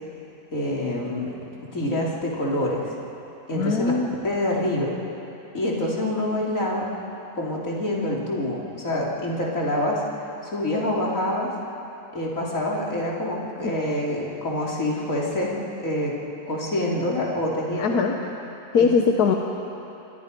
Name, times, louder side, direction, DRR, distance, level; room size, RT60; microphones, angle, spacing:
voice 1, 0.5-1.3 1.7-2.8 3.5-3.9 4.2-4.9 5.5-6.9 7.3-10.0 10.4-11.5 12.1-15.5 15.8-16.2 16.4-18.0 18.8-18.9, left 1 dB, 60° left, -4 dB, 3.9 m, -26 dB
voice 2, 3.5-4.1 17.8-18.2 18.7-19.4, left 5 dB, 90° left, 2 dB, 1.6 m, -20 dB
28.5 x 23.5 x 5.4 m, 3.0 s
omnidirectional pair, 1.6 m